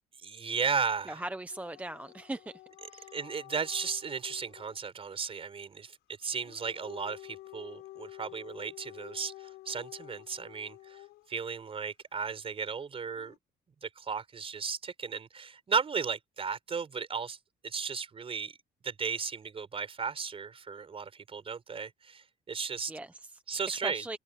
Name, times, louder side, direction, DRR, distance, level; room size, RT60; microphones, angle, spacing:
voice 1, 0.2-1.2 3.1-11.0 11.3-13.3 13.8-17.4 17.6-18.6 18.8-22.9 23.5-24.0, right 5 dB, 35° right, 4.9 m, -35 dB
voice 2, 1.1-2.6 2.9-3.2 22.9-23.4 23.8-24.2, right 1 dB, 10° right, 0.8 m, -39 dB
Dog / Siren, 1.5-4.8 6.2-11.4 13.0-13.4, left 17 dB, 85° left, 5.7 m, -50 dB
cardioid pair, 110°, 17 cm